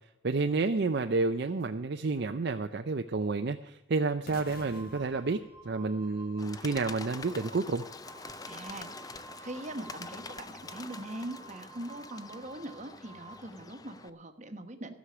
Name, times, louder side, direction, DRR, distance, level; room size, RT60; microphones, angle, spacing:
voice 1, 0.2-7.8, right 3 dB, 50° right, 7 dB, 0.5 m, -30 dB
Wind instrument woodwind instrument, 4.3-13.3, right 3 dB, 60° left, 6.4 m, -52 dB
sound 1, 4.3-6.4, left 2 dB, 45° left, 1.2 m, -50 dB
Bird, 6.4-14.1, left 3 dB, 20° left, 0.4 m, -46 dB
voice 2, 8.5-14.9, right 1 dB, 35° right, 7 dB, 1.1 m, -42 dB
14.5 x 6.3 x 9.6 m, 1.0 s
head